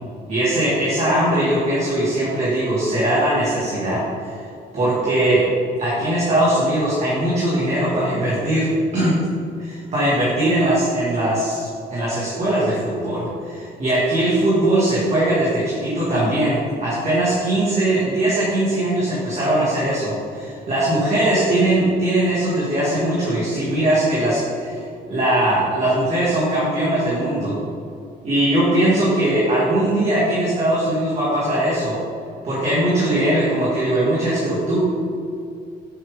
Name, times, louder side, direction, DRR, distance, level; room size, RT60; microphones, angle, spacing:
voice 1, 0.3-4.4 4.7-5.5 5.8-9.2 9.6-24.8 25.1-27.6 28.2-32.0 32.4-34.8, right 1 dB, 40° right, -8 dB, 2.1 m, -20 dB
8.9 x 7.1 x 3.7 m, 2.4 s
cardioid pair, 165°, 17 cm